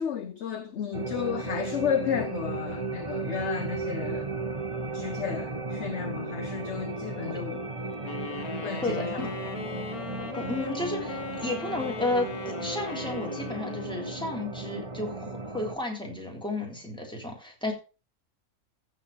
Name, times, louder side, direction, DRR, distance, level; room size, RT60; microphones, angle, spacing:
voice 1, 0.0-4.3 4.9-7.6 8.6-9.3, left 8 dB, 55° left, 1.0 m, -32 dB
sound 1, 0.9-15.8, right 3 dB, 25° right, 1.1 m, -35 dB
sound 2, 8.1-14.5, left 5 dB, 75° left, 1.9 m, -38 dB
voice 2, 8.8-9.5 10.3-17.7, left 2 dB, 5° left, 3.4 m, -33 dB
14.5 x 5.2 x 5.7 m
omnidirectional pair, 1.6 m